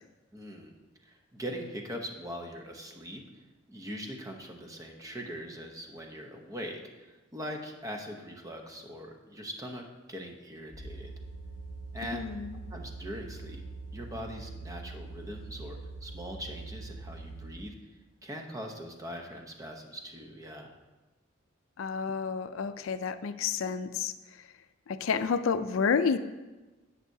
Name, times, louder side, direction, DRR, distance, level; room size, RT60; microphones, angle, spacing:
voice 1, 0.3-0.7 1.0-3.2 3.7-11.1 11.9-12.2 12.7-13.6 13.9-17.7 18.2-20.7, equal, 15° right, 2 dB, 0.8 m, -41 dB
sound 1, 10.7-17.6, right 3 dB, 40° left, 2.2 m, -43 dB
voice 2, 12.1-12.6 21.8-24.1 24.9-26.2, left 6 dB, 80° left, 12 dB, 0.4 m, -30 dB
11.0 x 7.5 x 2.7 m, 1.2 s
head